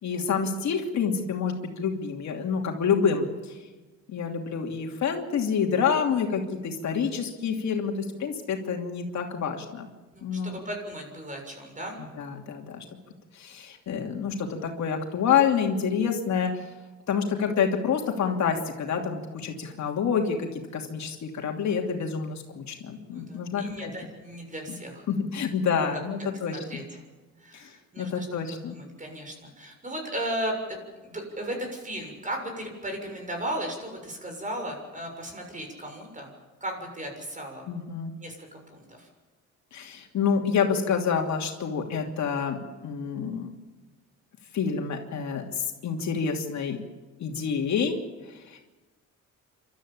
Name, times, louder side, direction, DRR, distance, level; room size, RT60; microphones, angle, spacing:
voice 1, 0.0-3.5 4.1-9.9 10.2-10.6 12.2-12.8 13.3-16.6 17.1-23.9 24.7-24.8 25.1-26.8 27.5-27.7 28.0-28.8 37.7-38.1 39.7-43.5 44.5-46.8 47.2-48.0 48.3-48.6, left 6 dB, 65° left, 2 dB, 2.9 m, -28 dB
voice 2, 10.1-12.0 23.0-25.0 25.9-27.0 27.4-30.8 31.0-36.3 36.6-37.6 38.2-38.4 38.7-39.1, right 1 dB, 25° right, 3 dB, 6.9 m, -36 dB
28.0 x 13.5 x 8.6 m, 1.2 s
cardioid pair, 90°, 30 cm